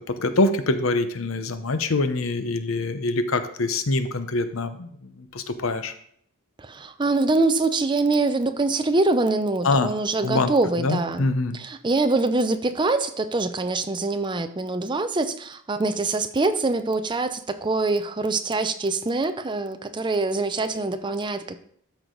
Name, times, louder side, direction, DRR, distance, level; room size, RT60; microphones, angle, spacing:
voice 1, 0.1-4.9 5.2-5.9 9.6-9.9 10.2-10.5 10.8-11.6, left 2 dB, 70° left, 0.8 m, -24 dB
voice 2, 6.6-11.3 11.5-21.6, right 3 dB, 20° right, 0.5 m, -24 dB
13.0 x 4.7 x 3.8 m
head